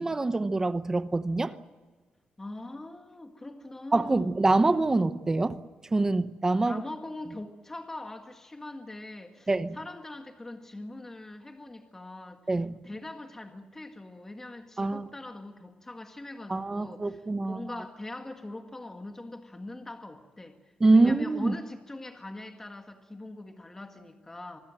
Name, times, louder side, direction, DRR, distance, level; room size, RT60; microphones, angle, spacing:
voice 1, 0.0-1.6 3.9-5.6 5.9-6.8 9.5-9.8 12.5-12.9 14.8-15.1 16.5-17.8 20.8-21.5, right 2 dB, 20° right, 0.8 m, -25 dB
voice 2, 2.4-4.3 6.7-12.4 12.8-20.6 20.9-24.6, left 2 dB, 15° left, 1.8 m, -42 dB
25.5 x 21.5 x 7.7 m
wide cardioid pair, 160°, 3 cm